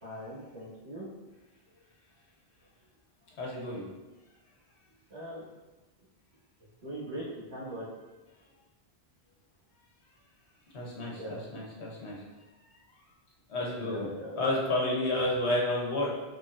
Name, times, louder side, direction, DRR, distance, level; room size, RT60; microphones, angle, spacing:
voice 1, 0.0-1.1 5.1-5.4 6.8-7.2 7.5-7.8 11.2-11.4 13.8-14.5, equal, 80° right, -11 dB, 2.0 m, -40 dB
voice 2, 3.4-3.8 10.7-12.2 13.5-14.1 14.4-16.1, left 1 dB, 85° left, -3 dB, 1.3 m, -31 dB
5.3 x 3.8 x 2.5 m, 1.2 s
omnidirectional pair, 1.1 m